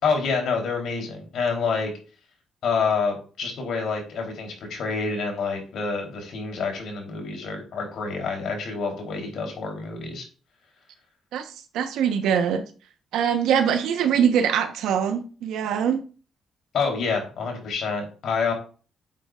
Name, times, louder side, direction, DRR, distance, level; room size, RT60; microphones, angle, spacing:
voice 1, 0.0-1.9 2.6-10.3 16.7-18.5, left 5 dB, 70° left, 2 dB, 3.6 m, -27 dB
voice 2, 11.3-12.6 13.1-16.0, right 8 dB, 85° right, 8 dB, 1.1 m, -23 dB
10.5 x 7.7 x 2.5 m, 0.37 s
cardioid pair, 90°, 0 cm